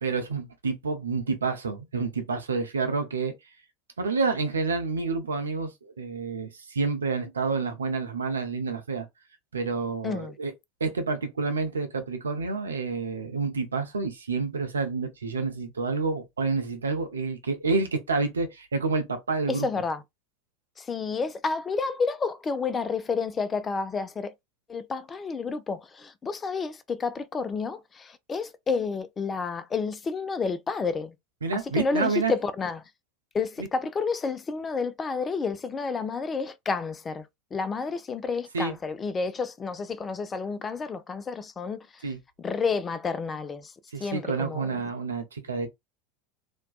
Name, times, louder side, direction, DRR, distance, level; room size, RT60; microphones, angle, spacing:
voice 1, 0.0-3.3 4.0-9.1 9.5-10.5 10.8-19.7 31.4-32.3 38.5-38.7 42.0-42.2 43.9-45.7, right 4 dB, 80° right, 0.5 m, -29 dB
voice 2, 10.0-10.4 19.5-20.0 20.8-24.3 24.7-31.2 31.7-32.8 33.3-37.3 37.5-42.0 42.4-43.7 44.0-44.8, left 4 dB, 25° left, 0.4 m, -30 dB
2.5 x 2.2 x 2.3 m
figure-of-eight pair, 80°, 0 cm